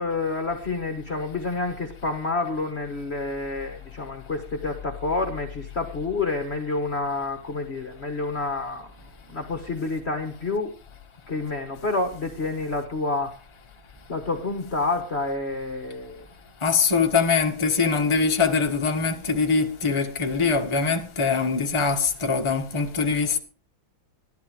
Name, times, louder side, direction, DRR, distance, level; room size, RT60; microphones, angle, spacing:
voice 1, 0.0-9.0 9.3-10.7 11.3-13.4 14.1-16.2, left 3 dB, 35° left, 1.4 m, -28 dB
voice 2, 16.6-23.4, left 5 dB, 15° left, 1.3 m, -23 dB
13.0 x 11.5 x 4.8 m
omnidirectional pair, 2.2 m